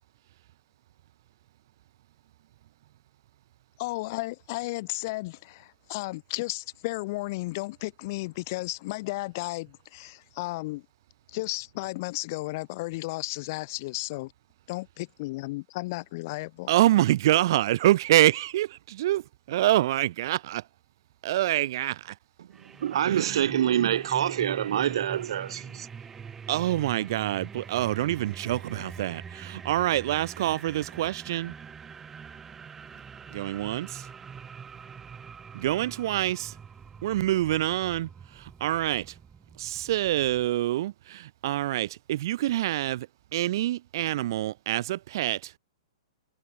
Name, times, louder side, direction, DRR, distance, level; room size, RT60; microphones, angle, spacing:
voice 1, 3.8-10.8 11.3-14.3 14.7-16.7, left 21 dB, 35° left, 1.2 m, -34 dB
voice 2, 16.7-19.2 19.5-20.4 21.2-22.1 23.1-23.5 26.5-31.5 33.3-34.1 35.5-36.5 37.0-38.1 38.4-39.0 39.6-43.1 43.3-45.5, right 14 dB, 45° right, 1.3 m, -26 dB
sound 1, 22.5-40.5, right 6 dB, 10° right, 5.3 m, -44 dB
voice 3, 22.8-25.9, right 10 dB, 60° right, 2.1 m, -26 dB
hypercardioid pair, 170°, 3 cm